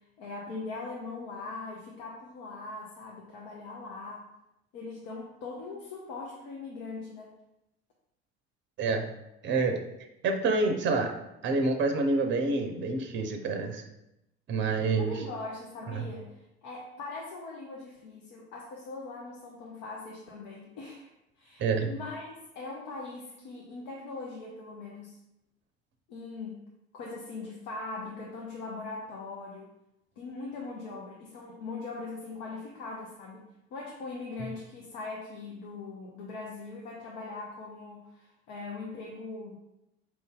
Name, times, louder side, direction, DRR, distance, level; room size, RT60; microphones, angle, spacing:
voice 1, 0.2-4.3 4.7-7.3 14.7-21.1 21.4-25.2 26.1-26.7 26.9-29.7 30.2-39.6, left 3 dB, 55° left, -1 dB, 0.8 m, -41 dB
voice 2, 9.4-9.8 10.2-11.1 11.4-13.8 14.5-15.2 15.9-16.0 21.6-21.9, right 3 dB, 35° right, 5 dB, 0.6 m, -27 dB
4.3 x 2.6 x 3.7 m, 0.88 s
figure-of-eight pair, 60°, 32 cm